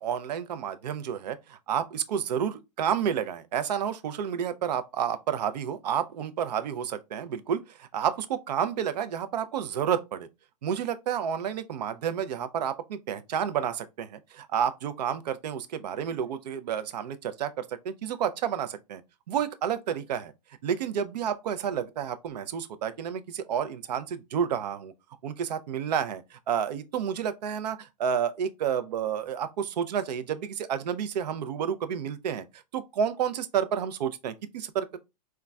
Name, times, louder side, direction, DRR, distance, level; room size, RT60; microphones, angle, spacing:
voice 1, 0.0-10.3 10.6-19.0 19.3-20.3 20.6-24.9 25.2-35.0, right 8 dB, 75° right, 0.5 m, -30 dB
3.8 x 2.3 x 2.2 m
hypercardioid pair, 125°, 21 cm